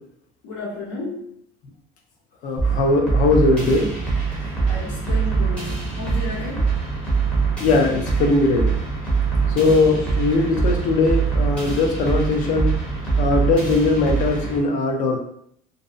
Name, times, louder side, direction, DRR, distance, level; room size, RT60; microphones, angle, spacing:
voice 1, 0.4-1.3 4.7-6.8 9.8-10.1, left 3 dB, 90° left, -9 dB, 1.2 m, -33 dB
voice 2, 2.4-4.0 7.6-8.7 9.4-12.8 13.2-15.2, left 3 dB, 45° left, 2 dB, 0.5 m, -20 dB
sound 1, 2.6-14.6, right 5 dB, 5° left, 0.7 m, -23 dB
2.6 x 2.0 x 2.4 m, 0.68 s
cardioid pair, 165°, 19 cm